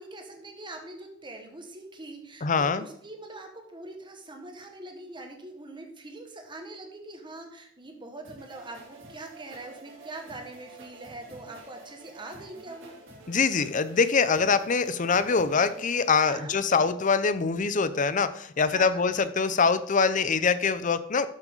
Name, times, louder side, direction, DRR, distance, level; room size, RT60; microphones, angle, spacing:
voice 1, 0.0-12.9 16.2-16.6 18.7-19.0, right 2 dB, 25° right, 3 dB, 1.6 m, -43 dB
voice 2, 2.4-2.9 13.3-21.3, left 5 dB, 40° left, 13 dB, 0.6 m, -24 dB
sound 1, 8.2-16.4, right 2 dB, 70° right, 3.0 m, -49 dB
12.0 x 6.0 x 3.9 m, 0.73 s
head